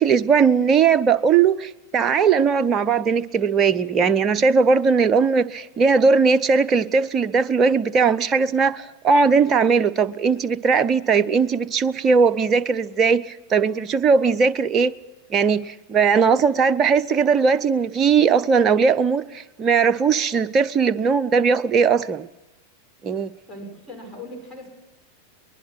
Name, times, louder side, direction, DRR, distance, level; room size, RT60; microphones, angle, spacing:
voice 1, 0.0-14.9 15.3-22.3 23.0-23.3, right 5 dB, 25° right, 0.8 m, -19 dB
voice 2, 23.5-24.7, left 1 dB, 15° left, 6.7 m, -38 dB
23.5 x 20.5 x 6.2 m
figure-of-eight pair, 90°, 0 cm